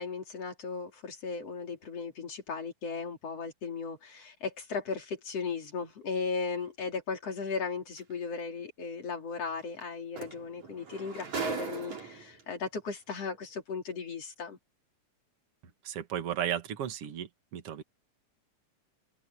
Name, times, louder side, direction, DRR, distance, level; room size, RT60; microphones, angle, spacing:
voice 1, 0.0-14.6, left 5 dB, 55° left, 4.4 m, -36 dB
sound 1, 8.0-8.1 9.8-9.9 10.2-12.4 13.3-13.4, right 5 dB, 70° right, 6.2 m, -38 dB
voice 2, 15.8-17.8, right 10 dB, 55° right, 2.6 m, -34 dB
open air
omnidirectional pair, 3.4 m